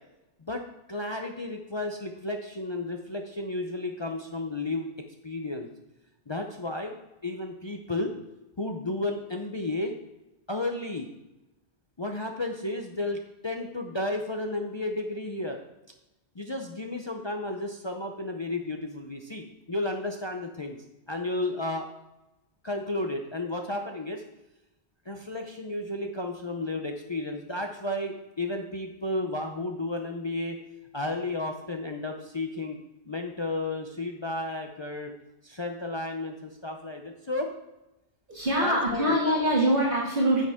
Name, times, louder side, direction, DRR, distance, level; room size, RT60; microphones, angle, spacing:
voice 1, 0.9-4.9 5.2-5.7 6.3-7.0 7.2-8.1 8.6-9.9 10.5-11.1 12.0-15.6 16.4-20.8 21.1-21.9 22.6-24.2 25.1-30.6 30.9-32.8 33.1-35.1 35.4-37.5 38.6-39.2, left 2 dB, 30° left, 3 dB, 0.6 m, -32 dB
voice 2, 38.3-40.4, right 1 dB, 50° right, -5 dB, 2.0 m, -24 dB
9.8 x 6.5 x 3.6 m, 0.96 s
omnidirectional pair, 1.1 m